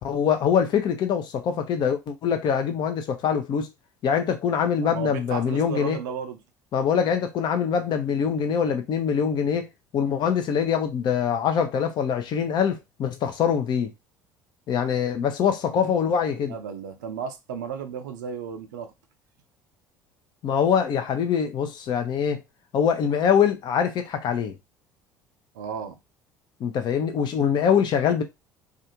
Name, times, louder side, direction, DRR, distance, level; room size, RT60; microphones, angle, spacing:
voice 1, 0.0-3.7 4.0-6.0 6.7-9.7 9.9-13.9 14.7-16.5 20.4-22.4 22.7-24.5 26.6-28.2, left 7 dB, 50° left, 0.6 m, -24 dB
voice 2, 4.8-6.4 15.7-18.9 25.5-26.0, right 7 dB, 75° right, 0.4 m, -34 dB
2.4 x 2.3 x 2.9 m
hypercardioid pair, 65°, 10 cm